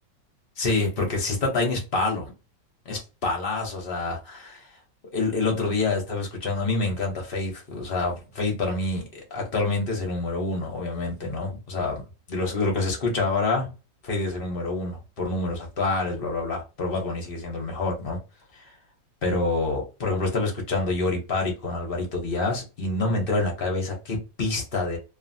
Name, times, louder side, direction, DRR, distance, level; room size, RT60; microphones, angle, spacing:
voice 1, 0.6-2.3 2.9-4.7 5.1-12.0 12.3-13.7 14.0-18.2 18.5-18.6 19.2-25.0, left 3 dB, 45° left, 0.8 m, -27 dB
2.7 x 2.6 x 2.6 m
omnidirectional pair, 2.0 m